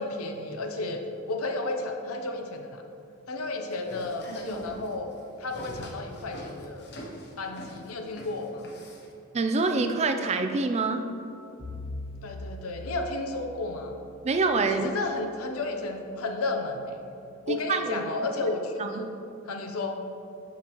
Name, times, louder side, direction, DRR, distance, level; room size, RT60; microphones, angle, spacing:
voice 1, 0.0-2.8 3.3-5.1 5.4-6.9 7.4-8.7 12.2-14.0 14.7-17.0 17.5-19.1 19.5-20.0, left 2 dB, 80° left, 4 dB, 0.7 m, -32 dB
sound 1, 3.7-9.1, equal, 50° left, 0.9 m, -42 dB
voice 2, 9.3-11.0 14.2-14.9 17.5-18.1 18.8-19.1, right 3 dB, 30° right, 7 dB, 0.4 m, -26 dB
Bowed string instrument, 11.6-15.8, left 1 dB, 85° right, 1.3 m, -42 dB
7.3 x 5.8 x 3.0 m, 2.7 s
head